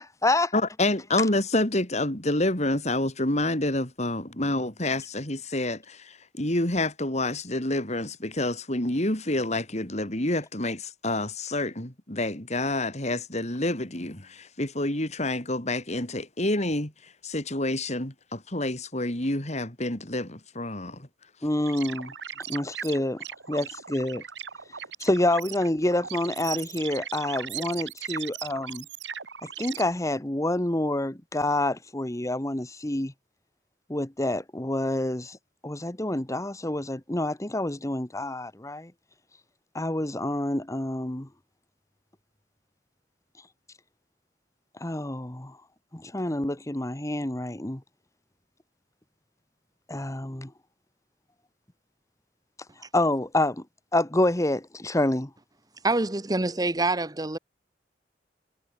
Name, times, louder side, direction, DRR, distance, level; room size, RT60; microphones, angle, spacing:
voice 1, 0.0-0.5 21.4-22.1 22.5-24.2 25.0-28.8 29.6-33.1 33.9-35.4 35.6-38.9 39.7-41.3 44.8-45.6 45.9-47.8 49.9-50.5 52.9-53.6 53.9-55.3, left 1 dB, 20° left, 1.3 m, -27 dB
voice 2, 0.5-21.1, left 2 dB, 40° left, 4.5 m, -28 dB
sound 1, 21.7-29.8, right 9 dB, 85° right, 3.1 m, -38 dB
voice 3, 55.8-57.4, right 2 dB, 20° right, 1.2 m, -26 dB
head